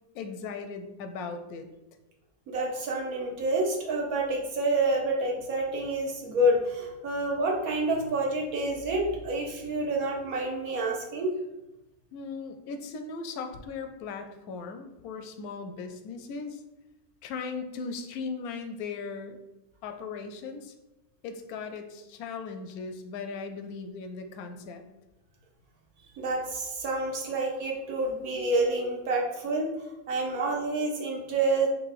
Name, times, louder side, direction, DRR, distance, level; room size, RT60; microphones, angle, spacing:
voice 1, 0.1-1.7 12.1-16.6 17.2-19.4 19.8-20.7 21.2-24.8, left 4 dB, 90° left, 6 dB, 1.1 m, -38 dB
voice 2, 2.5-11.3 26.2-29.7 30.1-31.7, right 2 dB, 80° right, 0 dB, 1.4 m, -28 dB
4.0 x 2.5 x 4.7 m, 0.95 s
omnidirectional pair, 1.5 m